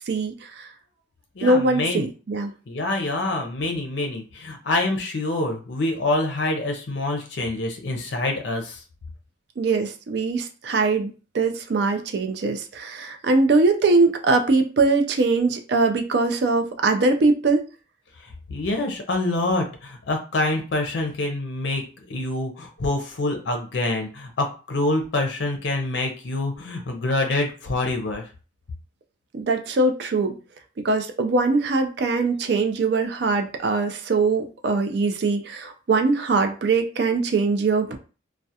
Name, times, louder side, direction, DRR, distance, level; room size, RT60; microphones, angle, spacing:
voice 1, 0.1-0.7 1.4-2.5 9.6-17.6 29.3-30.3 30.8-38.0, right 3 dB, 55° right, 6 dB, 0.4 m, -22 dB
voice 2, 1.4-2.1 2.7-8.8 18.2-28.3, left 2 dB, 65° left, 3 dB, 0.5 m, -26 dB
2.3 x 2.1 x 2.7 m, 0.35 s
head